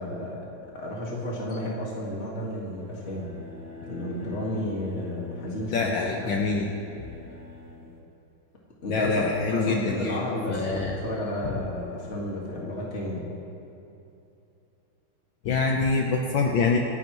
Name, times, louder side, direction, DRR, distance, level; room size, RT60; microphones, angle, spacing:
voice 1, 0.0-3.3 3.9-6.3 8.8-13.2, left 1 dB, 35° left, -4 dB, 2.0 m, -32 dB
sound 1, 2.7-8.0, left 3 dB, 10° left, 1.8 m, -45 dB
voice 2, 5.7-6.7 8.9-11.0 11.4-11.6 15.4-16.8, left 4 dB, 65° left, 0 dB, 1.5 m, -25 dB
26.5 x 10.5 x 3.1 m, 2.8 s
omnidirectional pair, 2.3 m